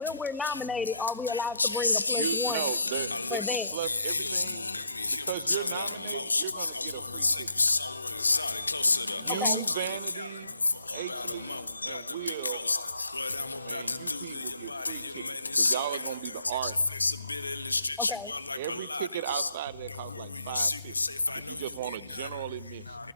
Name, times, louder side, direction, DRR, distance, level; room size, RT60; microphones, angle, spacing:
voice 1, 0.0-2.7 3.3-3.7 9.3-9.6 18.0-18.3, left 4 dB, 15° left, 1.3 m, -32 dB
voice 2, 1.6-3.2 3.5-3.6 3.9-4.4 5.0-5.1 5.5-6.4 6.8-6.9 7.2-7.9 8.2-9.8 11.1-12.0 12.5-12.8 13.2-13.5 13.7-13.8 14.1-14.2 14.7-14.8 15.5-15.8 17.0-18.4 18.7-19.5 20.6-21.4, left 3 dB, 80° left, 1.4 m, -29 dB
voice 3, 2.1-4.6 5.3-7.5 9.2-10.5 10.9-12.6 13.7-15.2 15.6-16.7 18.5-20.9 21.5-23.0, right 12 dB, 55° right, 1.1 m, -37 dB
25.0 x 19.5 x 9.8 m
figure-of-eight pair, 90°, 0 cm